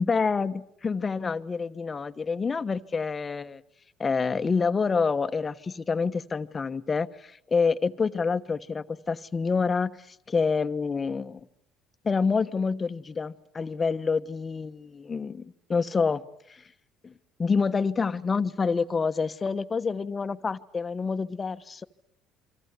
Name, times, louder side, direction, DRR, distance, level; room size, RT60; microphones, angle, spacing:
voice 1, 0.0-3.6 4.0-11.4 12.0-16.2 16.5-16.6 17.0-17.1 17.4-21.8, left 5 dB, 25° left, 12 dB, 1.1 m, -27 dB
29.0 x 24.5 x 8.2 m, 0.73 s
cardioid pair, 110°, 0 cm